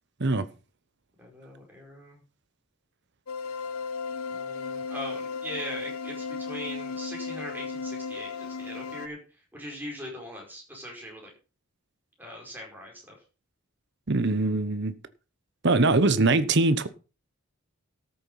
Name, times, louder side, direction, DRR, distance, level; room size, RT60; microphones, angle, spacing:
voice 1, 1.2-2.2 4.3-9.2 9.5-11.3 12.2-13.2, equal, 10° right, 5.2 m, -41 dB
sound 1, 3.3-9.1, left 5 dB, 80° left, 1.0 m, -35 dB
voice 2, 14.1-15.0 15.6-16.9, right 2 dB, 50° right, 1.0 m, -22 dB
13.0 x 7.2 x 5.6 m
head